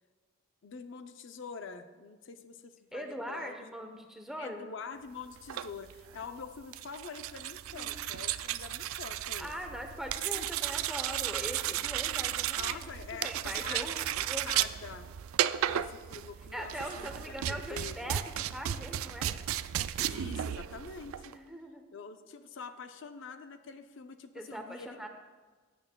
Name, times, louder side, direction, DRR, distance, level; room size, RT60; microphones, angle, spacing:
voice 1, 0.6-3.6 4.4-9.5 10.3-10.5 12.5-15.1 15.7-18.1 20.0-21.3 21.9-25.0, left 5 dB, 60° left, 8 dB, 0.5 m, -45 dB
voice 2, 2.9-4.7 7.7-7.9 9.4-14.7 16.5-18.2 18.5-19.3 21.3-21.8 24.3-25.1, equal, ahead, 3 dB, 0.8 m, -41 dB
sound 1, 5.4-21.4, right 11 dB, 90° right, 0.3 m, -34 dB
16.0 x 8.7 x 2.2 m, 1.4 s
head